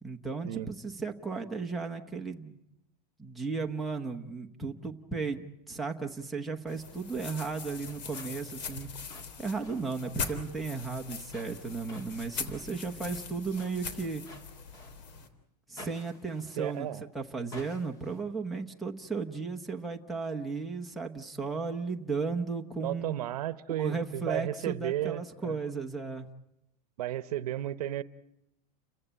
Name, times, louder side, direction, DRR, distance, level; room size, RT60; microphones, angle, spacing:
voice 1, 0.0-2.6 3.2-8.9 9.4-14.2 15.7-16.9 17.1-23.2 23.7-26.3, right 4 dB, ahead, 0.9 m, -35 dB
sound 1, 6.7-15.3, left 5 dB, 85° left, 3.3 m, -41 dB
sound 2, 7.6-15.2 15.8-17.0 17.5-18.2, left 1 dB, 15° left, 1.7 m, -53 dB
voice 2, 16.6-17.0 22.8-25.6 27.0-28.0, right 13 dB, 65° right, 0.9 m, -33 dB
29.5 x 15.5 x 8.9 m
supercardioid pair, 175°, 21 cm